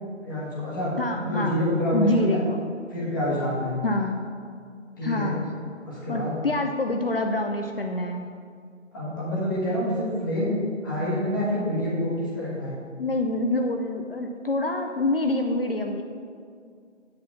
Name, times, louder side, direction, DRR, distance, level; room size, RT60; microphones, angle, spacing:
voice 1, 0.2-0.9 1.2-2.4 2.9-3.8 5.0-5.3 5.9-6.3 8.9-10.6 10.8-12.7, equal, 15° left, -7 dB, 1.3 m, -27 dB
voice 2, 1.0-1.6 1.9-2.6 3.8-4.2 5.0-5.5 6.1-8.3 13.0-16.0, left 2 dB, 50° left, 4 dB, 0.5 m, -26 dB
7.7 x 4.3 x 7.0 m, 2.2 s
figure-of-eight pair, 155°, 38 cm